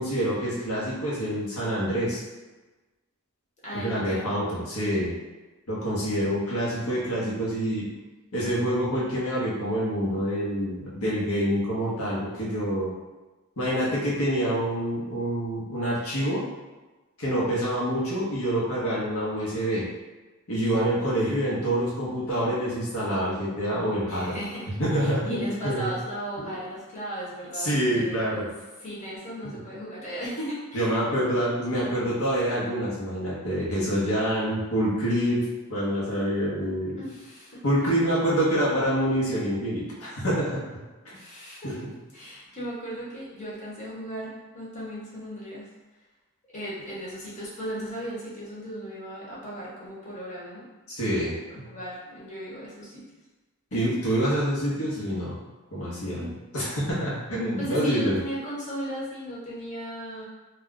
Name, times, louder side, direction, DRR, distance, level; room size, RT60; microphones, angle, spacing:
voice 1, 0.0-2.2 3.7-5.1 5.7-7.9 8.3-12.9 13.6-16.4 17.2-19.9 20.5-24.4 24.8-25.9 26.4-26.5 27.6-28.5 29.4-29.5 30.7-37.0 37.6-40.6 41.0-41.2 41.6-41.7 50.9-51.7 53.7-55.3 55.7-58.2, equal, 80° left, -7 dB, 0.9 m, -26 dB
voice 2, 3.6-4.3 24.1-28.5 28.8-30.9 37.0-37.6 41.1-41.8 42.1-45.7 46.5-50.7 51.6-53.1 53.7-53.8 56.0-56.3 57.6-60.3, equal, 30° left, -7 dB, 0.9 m, -36 dB
2.3 x 2.2 x 3.6 m, 1.2 s
head